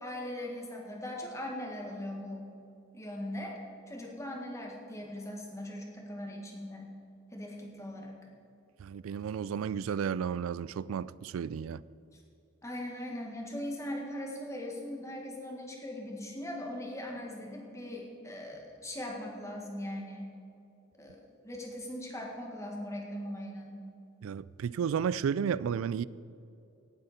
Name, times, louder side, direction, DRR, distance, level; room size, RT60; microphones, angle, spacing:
voice 1, 0.0-2.5 2.9-3.6 3.9-6.9 7.3-8.2 12.1-12.2 12.6-20.3 21.0-23.8, left 1 dB, 15° left, 1.8 m, -40 dB
voice 2, 8.8-11.8 24.2-26.0, right 7 dB, 80° right, 0.3 m, -32 dB
18.0 x 7.9 x 4.3 m
head